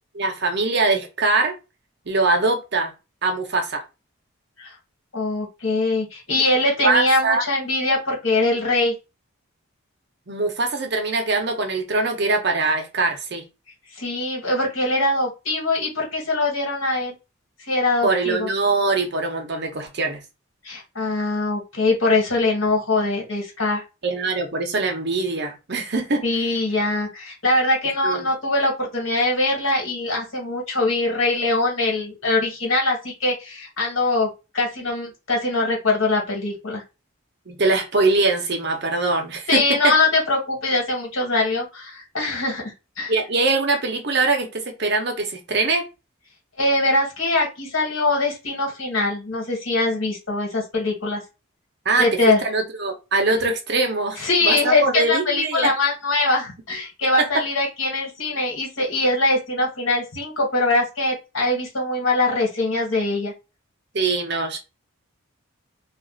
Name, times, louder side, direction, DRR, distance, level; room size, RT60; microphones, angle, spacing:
voice 1, 0.1-1.5 2.1-2.9 3.2-3.8 6.3-6.4 6.8-7.4 10.3-13.4 18.0-20.2 24.0-26.2 28.0-28.3 37.5-40.0 43.1-45.9 51.8-52.1 52.4-54.2 54.4-55.7 57.2-57.4 63.9-64.6, right 3 dB, 55° right, 3 dB, 0.8 m, -22 dB
voice 2, 5.1-8.9 13.9-17.1 17.7-18.5 20.6-23.8 26.2-36.8 39.5-43.1 46.6-51.2 52.0-52.4 54.2-63.3, left 2 dB, 70° left, -1 dB, 1.6 m, -22 dB
2.6 x 2.4 x 3.8 m, 0.28 s
head